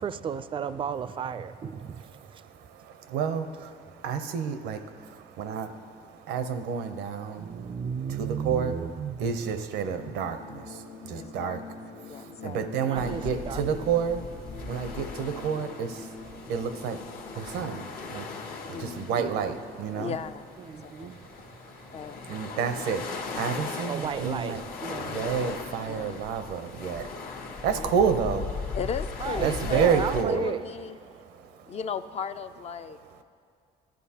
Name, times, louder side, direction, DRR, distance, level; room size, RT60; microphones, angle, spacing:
voice 1, 0.0-2.0 7.3-9.2 12.8-13.6 20.6-21.2 23.9-25.2 29.2-30.6, right 7 dB, 30° right, 13 dB, 0.4 m, -33 dB
voice 2, 1.7-11.6 12.0-20.2 21.2-21.4 21.7-24.6 24.9-28.8 29.4-30.5 31.0-31.8 32.9-33.2, right 7 dB, 85° right, 9 dB, 0.7 m, -31 dB
sound 1, 9.9-19.8, left 4 dB, 80° left, 1.1 m, -45 dB
voice 3, 11.1-11.8 12.0-12.7 18.7-19.3 20.0-20.5 20.8-21.2 21.9-22.3 25.8-26.3 27.7-27.9 28.7-29.9 30.3-31.0 31.7-33.2, left 6 dB, 40° left, 10 dB, 0.4 m, -36 dB
sound 2, 13.0-30.2, left 4 dB, 60° left, 1.0 m, -38 dB
16.5 x 11.5 x 2.8 m, 2.4 s
cardioid pair, 110°, 17 cm